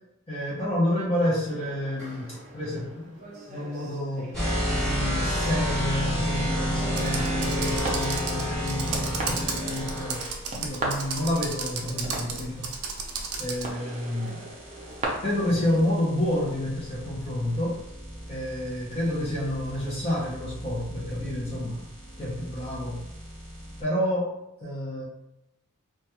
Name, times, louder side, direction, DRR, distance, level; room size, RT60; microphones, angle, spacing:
voice 1, 0.3-10.3 10.5-12.8 13.4-14.4 15.2-17.8 18.3-21.8 22.2-23.0 23.8-24.3 24.6-25.1, left 1 dB, 30° left, -7 dB, 0.6 m, -29 dB
sound 1, 1.4-15.0, right 2 dB, 35° right, 0.5 m, -40 dB
sound 2, 4.3-10.3 12.8-23.8, equal, 5° left, 1.1 m, -32 dB
Computer keyboard, 6.9-13.7, right 5 dB, 90° right, 0.4 m, -34 dB
2.3 x 2.2 x 2.8 m, 0.89 s
head